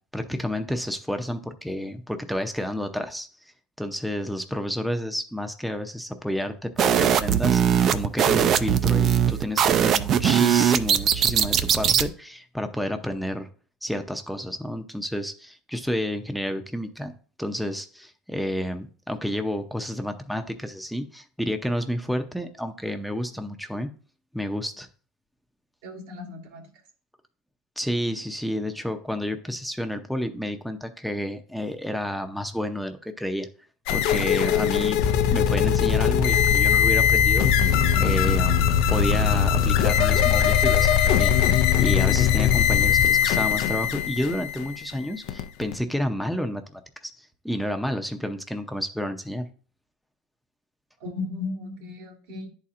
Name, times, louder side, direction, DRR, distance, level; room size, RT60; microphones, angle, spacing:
voice 1, 0.1-3.3 3.8-13.5 13.8-17.1 17.4-23.9 24.3-24.9 27.8-33.5 33.9-35.0 35.3-38.6 38.9-46.8 47.2-49.4, equal, ahead, 6 dB, 0.6 m, -30 dB
sound 1, 6.8-12.1, right 9 dB, 45° right, 0.4 m, -20 dB
voice 2, 25.8-26.7 51.0-52.5, left 3 dB, 85° right, 1 dB, 1.8 m, -35 dB
sound 2, 33.9-45.8, left 9 dB, 75° left, 0.5 m, -22 dB
sound 3, 35.0-43.1, left 6 dB, 50° left, 1.2 m, -24 dB
10.5 x 4.2 x 2.5 m, 0.41 s
supercardioid pair, 115°, 0 cm